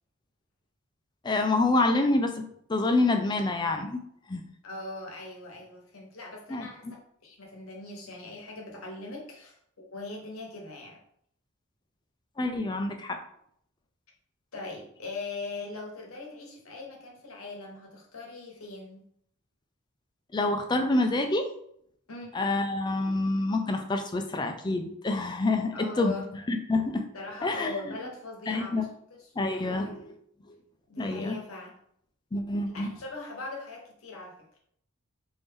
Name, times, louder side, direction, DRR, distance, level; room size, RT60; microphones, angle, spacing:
voice 1, 1.2-4.0 4.3-4.4 6.5-6.7 12.4-13.2 20.3-21.4 22.3-26.2 26.5-27.0 27.4-27.9 28.5-28.9 29.4-30.0 31.0-31.4 32.3-32.9, left 2 dB, 20° left, 5 dB, 0.3 m, -27 dB
voice 2, 4.6-11.0 14.5-19.1 22.1-22.3 25.7-26.3 27.1-29.3 29.6-30.0 30.9-31.8 32.7-34.3, left 3 dB, 75° left, 0 dB, 1.0 m, -41 dB
3.4 x 2.6 x 3.4 m, 0.68 s
head